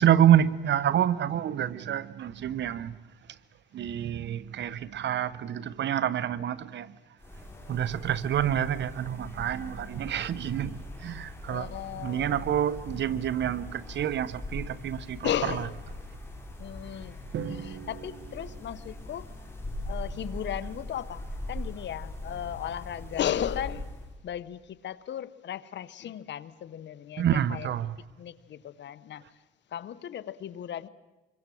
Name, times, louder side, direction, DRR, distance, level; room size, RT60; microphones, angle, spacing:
voice 1, 0.0-3.0 3.7-7.0 7.7-11.7 12.0-15.7 27.2-27.9, right 10 dB, 65° right, 1.0 m, -27 dB
sound 1, 7.2-24.1, left 1 dB, 10° left, 5.8 m, -41 dB
voice 2, 11.4-12.4 15.2-15.7 16.6-19.3 19.8-21.2 21.5-23.9 24.2-27.7 28.2-29.2 29.7-30.9, left 10 dB, 65° left, 1.1 m, -35 dB
Drum, 17.3-19.5, right 7 dB, 80° right, 1.6 m, -40 dB
26.0 x 22.5 x 7.8 m
cardioid pair, 90°, 20 cm